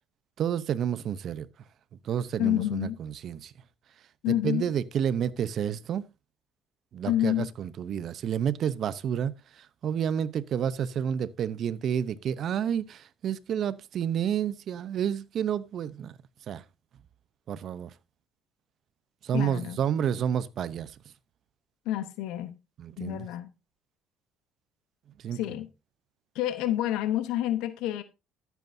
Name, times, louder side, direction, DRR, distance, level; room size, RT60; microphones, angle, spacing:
voice 1, 0.4-1.5 2.0-3.5 4.3-6.0 6.9-16.1 16.5-16.6 17.5-17.9 19.2-21.0 22.8-23.3 25.2-25.4, right 8 dB, 50° right, 0.7 m, -30 dB
voice 2, 2.4-3.0 4.2-4.6 7.1-7.5 19.3-19.8 21.9-22.6 23.0-23.5 25.3-25.7 26.3-28.0, left 13 dB, 80° left, 0.9 m, -28 dB
13.5 x 8.2 x 2.7 m
cardioid pair, 110°, 0 cm